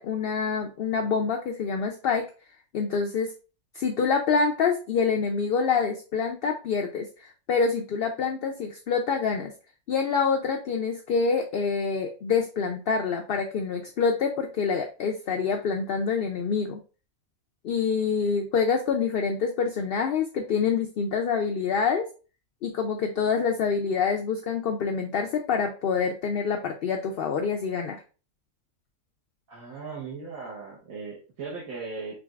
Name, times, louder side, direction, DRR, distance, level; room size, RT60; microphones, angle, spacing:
voice 1, 0.0-2.3 2.7-3.3 3.7-9.5 9.9-16.8 17.6-22.0 22.6-28.0, left 5 dB, 70° left, 2 dB, 0.5 m, -26 dB
voice 2, 29.5-32.2, right 4 dB, 75° right, -5 dB, 1.4 m, -38 dB
5.0 x 3.2 x 2.3 m, 0.36 s
omnidirectional pair, 1.5 m